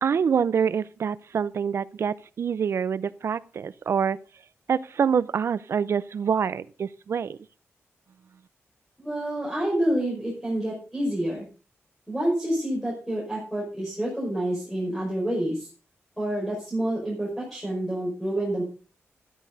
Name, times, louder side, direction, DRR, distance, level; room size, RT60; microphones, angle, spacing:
voice 1, 0.0-4.2 4.7-7.4, right 7 dB, 65° right, 17 dB, 0.6 m, -26 dB
voice 2, 9.0-11.5 12.1-15.7 16.2-18.6, right 1 dB, ahead, -5 dB, 5.8 m, -28 dB
13.0 x 12.0 x 4.0 m, 0.36 s
wide cardioid pair, 145°, 5 cm